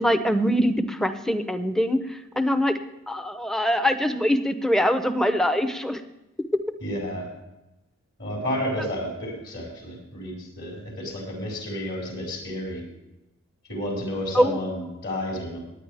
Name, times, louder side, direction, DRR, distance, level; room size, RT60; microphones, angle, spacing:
voice 1, 0.0-2.0 2.4-2.7 3.1-6.0 14.3-14.6, equal, ahead, 9 dB, 0.7 m, -23 dB
voice 2, 6.8-7.3 8.2-12.8 13.7-15.6, left 1 dB, 55° left, -2 dB, 4.8 m, -31 dB
18.0 x 9.7 x 3.4 m, 0.96 s
head